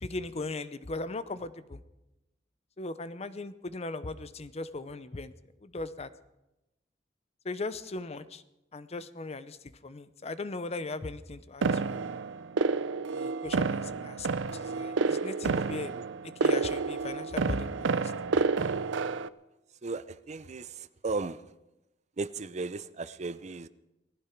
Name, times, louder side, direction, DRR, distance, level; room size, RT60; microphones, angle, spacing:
voice 1, 0.0-1.8 2.8-5.3 5.6-6.1 7.4-8.4 8.7-9.6 9.8-12.0 13.1-14.3 14.5-15.9 16.2-18.1, left 2 dB, 35° left, 13 dB, 0.7 m, -38 dB
sound 1, 11.6-19.3, right 4 dB, 85° right, 0.5 m, -29 dB
voice 2, 19.8-20.7 21.0-21.4 22.2-23.7, right 3 dB, 40° right, 15 dB, 0.5 m, -35 dB
19.0 x 15.0 x 4.6 m, 0.95 s
head